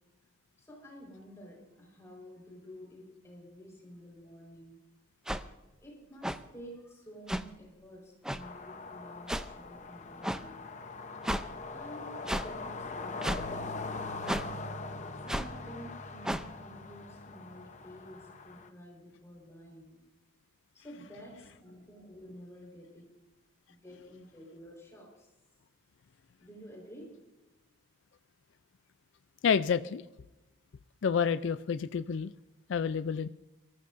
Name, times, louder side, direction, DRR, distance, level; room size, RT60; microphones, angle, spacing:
voice 1, 0.6-4.8 5.8-10.7 11.7-14.0 15.2-20.0 20.7-23.1 23.7-25.3 26.4-27.2, equal, 15° left, -2 dB, 4.5 m, -50 dB
sound 1, 5.3-5.4 6.2-6.4 7.3-7.4 8.2-8.4 9.3-9.4 10.2-10.4 11.2-11.4 12.3-12.5 13.2-13.4 14.3-14.5 15.3-15.5 16.2-16.4, equal, 5° right, 0.4 m, -32 dB
sound 2, 8.4-18.7, left 3 dB, 35° left, 0.7 m, -42 dB
voice 2, 29.4-30.0 31.0-32.3 32.7-33.3, left 6 dB, 65° left, 12 dB, 0.4 m, -29 dB
23.5 x 14.0 x 2.6 m, 1.0 s
head